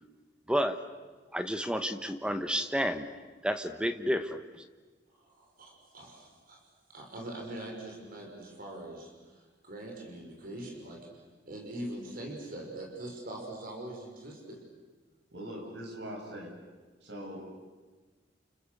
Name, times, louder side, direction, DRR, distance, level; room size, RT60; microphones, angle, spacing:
voice 1, 0.5-0.8 1.3-3.1 3.4-4.6, equal, 5° right, 9 dB, 1.1 m, -31 dB
voice 2, 5.1-6.6 6.9-11.0 11.5-14.6, right 1 dB, 50° right, 0 dB, 5.3 m, -43 dB
voice 3, 15.3-16.5 17.0-17.5, equal, 65° right, 1 dB, 7.1 m, -41 dB
30.0 x 29.5 x 6.8 m, 1.4 s
head